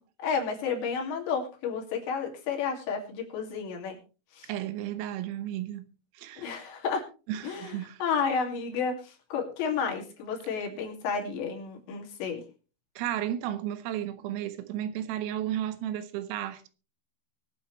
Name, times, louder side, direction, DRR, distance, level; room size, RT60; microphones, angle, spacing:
voice 1, 0.2-4.0 4.3-4.5 6.4-7.0 7.4-12.4, left 6 dB, 65° left, 4.5 m, -31 dB
voice 2, 4.5-5.9 6.2-6.7 7.3-8.0 13.0-16.7, right 11 dB, 85° right, 3.7 m, -33 dB
22.0 x 8.3 x 3.2 m
omnidirectional pair, 5.8 m